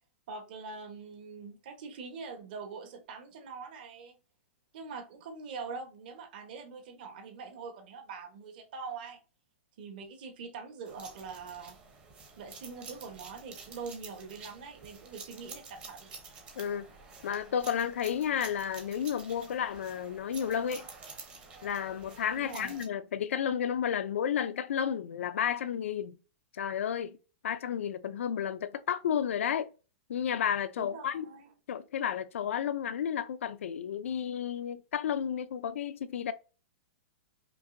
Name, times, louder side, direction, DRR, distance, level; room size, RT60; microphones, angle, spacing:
voice 1, 0.3-4.1 4.7-9.2 9.8-11.8 12.4-16.1 22.4-22.9 30.8-31.5, right 5 dB, 45° right, 1.1 m, -43 dB
sound 1, 10.9-22.9, right 4 dB, 15° right, 0.8 m, -49 dB
voice 2, 16.6-16.9 17.2-20.9 21.6-26.2 26.5-27.2 27.4-29.7 30.1-31.3 31.7-36.3, left 8 dB, 85° left, 0.5 m, -32 dB
5.3 x 2.6 x 2.6 m
supercardioid pair, 170°, 7 cm